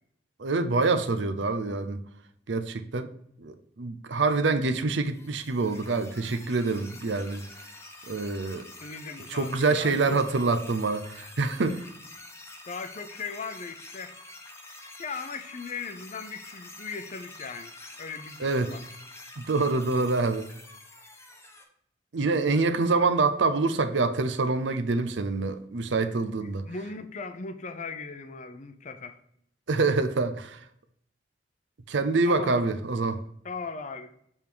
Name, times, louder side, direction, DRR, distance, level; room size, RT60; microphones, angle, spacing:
voice 1, 0.4-2.0 2.5-3.1 3.4-7.5 8.1-8.7 9.3-11.8 18.4-18.7 19.4-20.5 22.1-26.6 29.7-30.6 31.9-33.2, right 3 dB, 80° right, 0.6 m, -26 dB
sound 1, 5.0-21.6, left 2 dB, 15° left, 0.9 m, -47 dB
voice 2, 8.8-10.2 12.7-14.2 14.6-18.8 26.4-29.2 32.3-32.7 33.4-34.1, left 4 dB, 40° left, 0.6 m, -38 dB
7.2 x 3.6 x 4.6 m
head